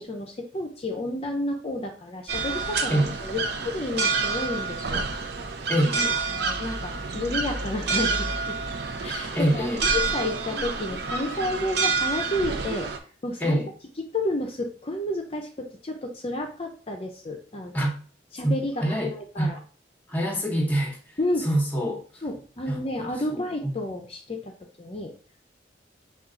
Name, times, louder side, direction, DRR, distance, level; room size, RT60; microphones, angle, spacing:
voice 1, 0.0-5.1 6.3-8.6 9.0-12.9 13.2-13.6 14.0-17.9 18.3-19.6 21.2-21.5 22.2-24.5 24.8-25.1, left 1 dB, 35° left, 0.6 m, -31 dB
sound 1, 2.3-13.0, right 4 dB, 65° right, 0.6 m, -28 dB
voice 2, 5.7-6.2 9.3-9.9 13.4-13.7 17.7-17.9 18.4-19.5 20.1-22.0 22.7-23.7, right 1 dB, 10° left, 0.9 m, -26 dB
5.8 x 2.4 x 3.8 m
head